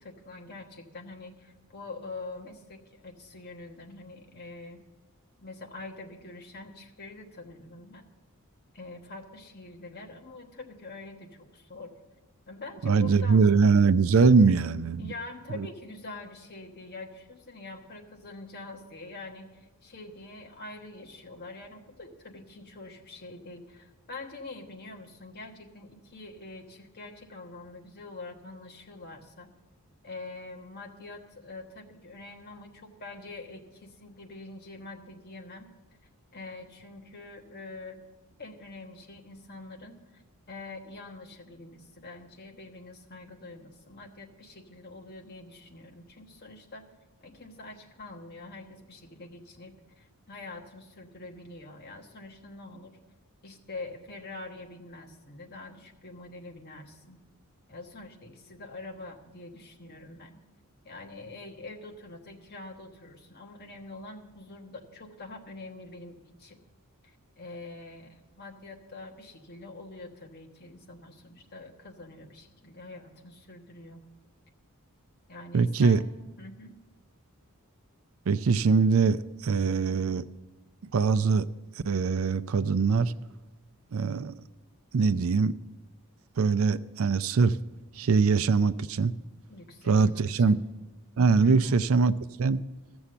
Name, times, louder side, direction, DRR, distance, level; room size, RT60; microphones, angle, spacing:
voice 1, 0.0-4.8 5.4-8.0 8.7-11.9 12.5-13.4 15.0-29.5 30.0-35.7 36.3-38.0 38.4-40.2 40.5-46.9 47.2-52.9 53.4-57.2 57.7-60.4 60.8-66.6 67.0-74.0 75.3-76.0 76.4-76.8 89.5-90.6 91.4-91.8, left 2 dB, 45° left, 1.3 m, -45 dB
voice 2, 12.8-15.1 15.5-15.7 75.5-76.0 78.3-80.3 80.9-81.5 81.8-83.1 83.9-84.4 84.9-85.5 86.4-87.6 88.0-89.1 89.9-90.6 91.2-92.1 92.4-92.6, right 5 dB, 65° right, 0.4 m, -22 dB
14.5 x 7.0 x 6.7 m
head